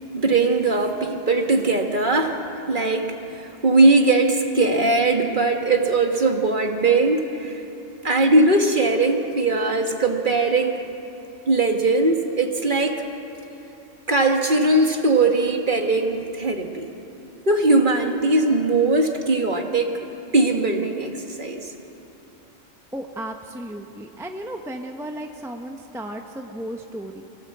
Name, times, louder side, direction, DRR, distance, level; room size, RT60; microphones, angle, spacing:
voice 1, 0.1-2.4 2.7-7.6 8.0-10.8 11.5-13.0 14.1-16.9 17.5-20.0 20.3-21.7, right 2 dB, 40° right, 3 dB, 1.8 m, -20 dB
voice 2, 22.9-27.2, right 1 dB, ahead, 3 dB, 0.9 m, -34 dB
25.5 x 17.5 x 8.0 m, 3.0 s
omnidirectional pair, 1.4 m